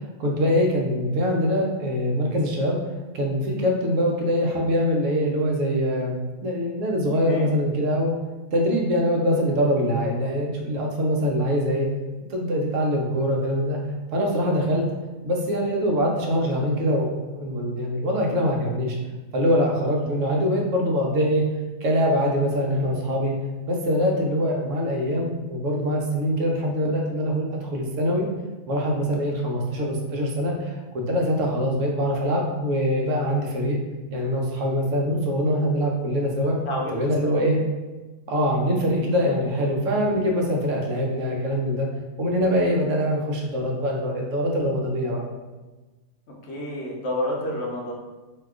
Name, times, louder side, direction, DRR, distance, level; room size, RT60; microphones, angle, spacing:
voice 1, 0.2-2.8 3.1-6.2 6.4-8.1 8.5-11.9 12.3-13.8 14.1-14.9 15.2-19.0 19.3-21.4 21.8-23.3 23.6-28.3 28.7-33.8 34.1-36.6 36.9-37.6 38.3-41.9 42.2-45.2, equal, 70° right, 0 dB, 0.9 m, -23 dB
voice 2, 42.4-42.7 46.4-47.9, left 1 dB, 60° left, -2 dB, 0.8 m, -30 dB
2.7 x 2.3 x 3.5 m, 1.2 s
omnidirectional pair, 1.5 m